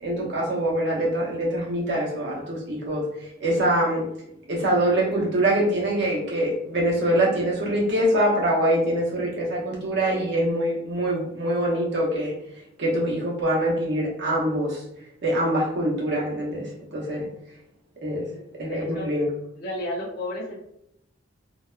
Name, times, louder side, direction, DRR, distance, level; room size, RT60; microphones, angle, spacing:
voice 1, 0.0-3.0 3.4-4.1 4.5-12.3 12.8-14.8 15.2-17.3 18.0-18.3 18.6-19.3, right 1 dB, 60° right, -4 dB, 0.9 m, -24 dB
voice 2, 18.6-19.1 19.6-20.6, left 1 dB, 50° left, -3 dB, 0.4 m, -32 dB
2.7 x 2.1 x 2.3 m, 0.80 s
head